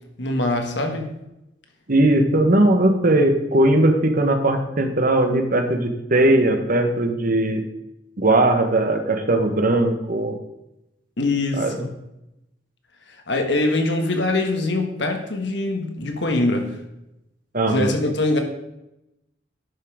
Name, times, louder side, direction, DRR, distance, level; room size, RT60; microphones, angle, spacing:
voice 1, 0.2-1.1 11.2-11.9 13.1-16.7 17.7-18.4, left 2 dB, 65° left, 4 dB, 1.5 m, -23 dB
voice 2, 1.9-7.6 8.2-10.4 11.5-11.8 17.5-17.9, right 1 dB, 50° right, 5 dB, 1.2 m, -19 dB
11.0 x 5.6 x 5.0 m, 0.90 s
head